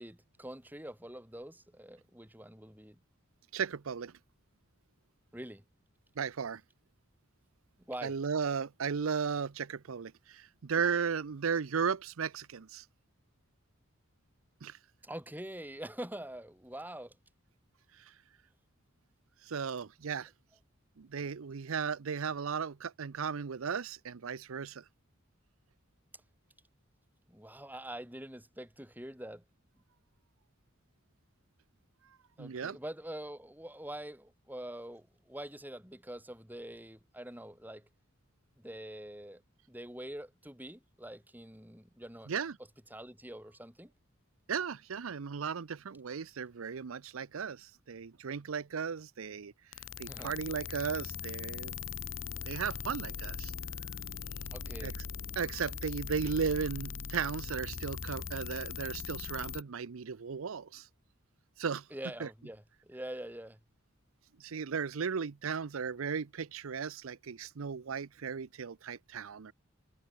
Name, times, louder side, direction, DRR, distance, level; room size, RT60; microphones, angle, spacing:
voice 1, 0.0-3.0 5.3-5.6 7.9-8.1 15.0-17.2 27.3-29.4 32.4-37.9 38.6-39.4 39.7-42.3 42.9-43.9 50.1-50.3 54.5-55.0 61.9-63.6, right 1 dB, 10° right, 5.6 m, -45 dB
voice 2, 3.5-4.1 6.2-6.6 8.0-12.9 14.6-14.8 17.9-18.1 19.4-20.3 21.0-24.8 32.4-32.8 42.3-42.6 44.5-49.5 50.0-51.8 52.5-53.5 54.8-54.9 55.4-60.9 61.6-61.9 62.2-62.3 64.4-69.5, right 6 dB, 85° right, 0.6 m, -35 dB
sound 1, 49.7-59.6, left 6 dB, 70° left, 1.2 m, -40 dB
head